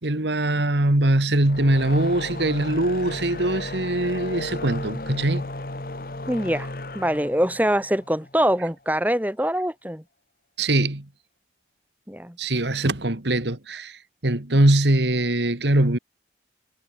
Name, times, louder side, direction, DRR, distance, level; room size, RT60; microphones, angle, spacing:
voice 1, 0.0-5.5 10.6-11.1 12.4-16.0, right 1 dB, 80° right, 2.2 m, -22 dB
sound 1, 1.3-8.7, left 2 dB, 55° left, 1.6 m, -35 dB
voice 2, 6.3-6.7 6.9-10.0 12.1-12.4, equal, 10° right, 4.7 m, -23 dB
head